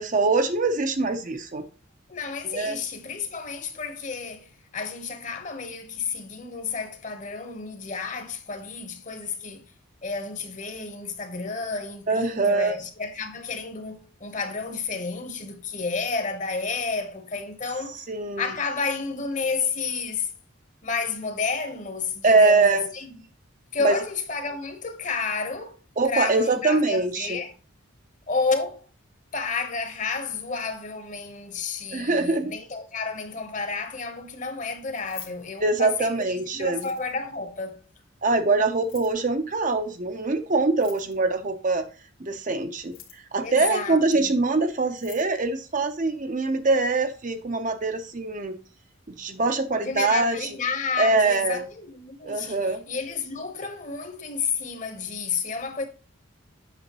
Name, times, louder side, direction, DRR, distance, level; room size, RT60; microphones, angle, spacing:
voice 1, 0.0-1.6 2.4-2.8 12.1-12.8 18.1-18.4 22.2-22.9 23.8-24.0 26.0-27.4 31.9-32.5 35.6-36.9 38.2-41.9 42.2-42.9 43.3-48.5 49.1-50.5 51.0-51.7 52.2-52.8, right 3 dB, 40° right, 0.7 m, -23 dB
voice 2, 2.1-9.7 10.0-18.0 18.4-20.3 20.8-23.2 23.7-27.5 28.3-28.9 29.3-37.8 43.4-44.3 49.8-55.8, left 4 dB, 35° left, 1.1 m, -31 dB
Keys jangling, 34.9-36.2 36.7-37.4 38.7-39.2 40.7-41.4 42.7-43.4 44.5-44.6 44.9-45.3, left 11 dB, 75° left, 1.8 m, -46 dB
8.3 x 6.3 x 3.0 m
head